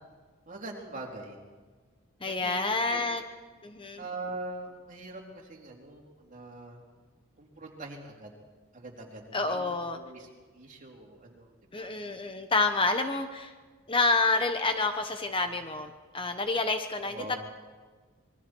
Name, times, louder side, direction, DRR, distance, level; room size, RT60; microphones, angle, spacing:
voice 1, 0.5-1.4 2.3-2.6 2.9-3.1 4.0-6.8 7.4-8.3 8.7-11.9 17.0-17.4, right 2 dB, 35° right, -1 dB, 3.7 m, -43 dB
voice 2, 2.2-3.2 3.6-4.0 9.3-10.0 11.7-13.5 13.9-17.4, left 3 dB, 25° left, 7 dB, 1.0 m, -28 dB
26.0 x 22.0 x 4.6 m, 1.5 s
head